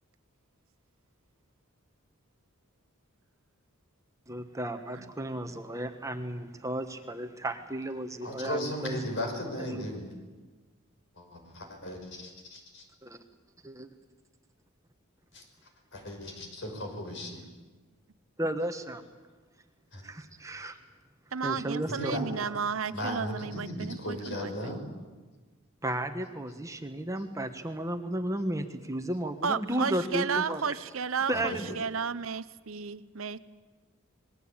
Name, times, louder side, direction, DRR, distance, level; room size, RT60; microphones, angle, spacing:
voice 1, 4.3-9.0 9.8-9.9 13.0-13.2 13.6-13.9 18.4-19.0 20.0-20.8 21.4-22.3 25.8-30.7 31.3-31.8, right 1 dB, 15° right, 6 dB, 1.4 m, -34 dB
voice 2, 8.2-10.1 11.2-12.9 15.3-15.4 15.9-17.4 19.9-20.0 21.9-22.2 22.9-24.8 31.3-31.8, equal, 60° left, 4 dB, 5.8 m, -36 dB
voice 3, 21.3-24.7 29.4-33.4, right 5 dB, 70° right, 14 dB, 0.9 m, -33 dB
26.5 x 21.5 x 8.8 m, 1.3 s
head